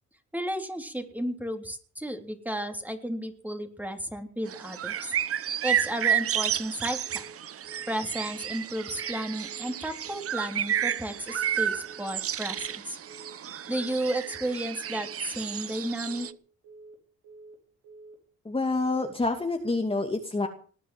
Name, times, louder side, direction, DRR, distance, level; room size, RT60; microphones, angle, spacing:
voice 1, 0.3-5.1 5.6-7.2 7.9-13.0 13.7-16.3, right 1 dB, 5° right, 5 dB, 3.4 m, -33 dB
sound 1, 4.5-16.3, right 9 dB, 50° right, 0.9 m, -31 dB
Telephone, 7.0-7.3 7.6-7.9 8.2-8.5 8.8-9.1 9.4-9.7 10.0-10.3 10.6-10.9 11.2-11.5 11.8-12.1 12.4-12.7 13.0-13.3 13.6-13.9 14.2-14.5 14.8-15.1 15.4-15.7 16.0-16.3 16.6-16.9 17.2-17.5 17.8-18.1, right 3 dB, 80° right, 5.4 m, -49 dB
voice 2, 18.4-20.5, left 3 dB, 20° left, 4 dB, 2.4 m, -27 dB
20.0 x 9.4 x 7.7 m, 0.43 s
cardioid pair, 90°, 30 cm